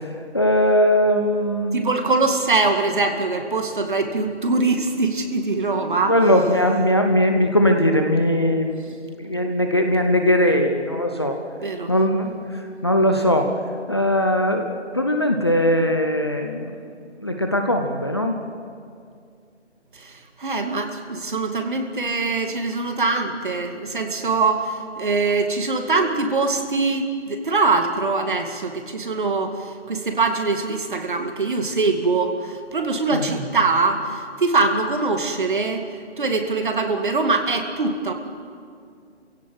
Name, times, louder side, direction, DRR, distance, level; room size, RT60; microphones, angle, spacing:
voice 1, 0.3-1.9 6.1-11.4 11.9-12.3 12.8-13.5 13.9-14.7 14.9-16.7 17.2-18.4 33.1-33.2, equal, 20° left, 4 dB, 0.8 m, -20 dB
voice 2, 1.7-6.2 11.6-11.9 20.0-35.8 36.2-38.1, right 3 dB, 45° right, 5 dB, 2.2 m, -23 dB
27.5 x 17.0 x 7.7 m, 2.3 s
hypercardioid pair, 175°, 35 cm